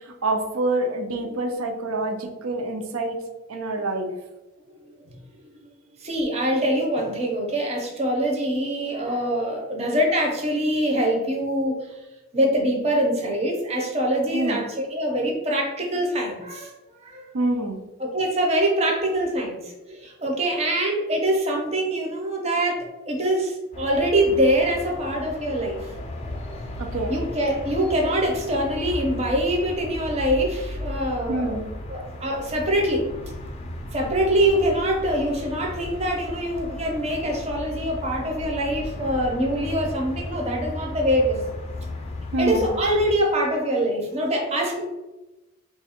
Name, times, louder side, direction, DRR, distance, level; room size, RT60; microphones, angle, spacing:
voice 1, 0.2-3.2 3.5-4.1 9.0-9.1 14.3-14.6 17.3-17.8 26.8-27.1 31.3-31.7 42.3-42.7, right 2 dB, 80° right, 5 dB, 0.5 m, -26 dB
voice 2, 6.0-11.8 12.3-16.7 17.0-17.2 18.0-19.6 19.9-25.8 27.1-31.6 31.9-33.1 33.9-41.4 42.4-44.8, right 1 dB, 30° right, 0 dB, 0.6 m, -24 dB
sound 1, 23.7-43.1, left 1 dB, 30° left, 0.4 m, -35 dB
3.2 x 2.4 x 4.3 m, 1.0 s
head